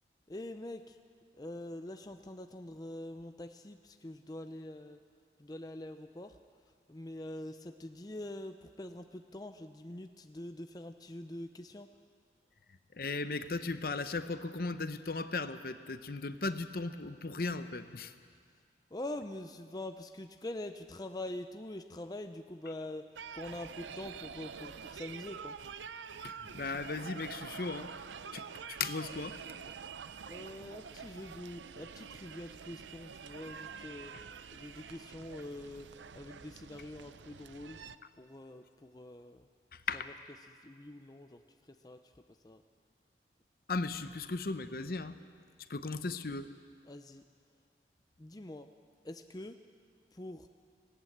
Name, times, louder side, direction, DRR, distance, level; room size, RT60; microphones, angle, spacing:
voice 1, 0.3-1.0 1.4-5.0 5.4-6.4 6.9-11.9 18.9-23.1 23.3-25.9 30.3-34.1 34.5-35.9 36.1-37.8 38.2-39.5 39.9-40.0 40.5-42.6 46.9-47.2 48.2-48.7 49.0-49.6 50.1-50.5, left 1 dB, 20° left, 7 dB, 0.6 m, -44 dB
voice 2, 12.9-18.1 26.2-27.9 28.3-29.4 39.7-40.1 43.7-45.2 45.7-46.5, left 3 dB, 55° left, 10 dB, 0.8 m, -37 dB
sound 1, 23.2-38.0, right 6 dB, 90° right, 0.6 m, -47 dB
19.0 x 17.5 x 8.0 m, 2.1 s
head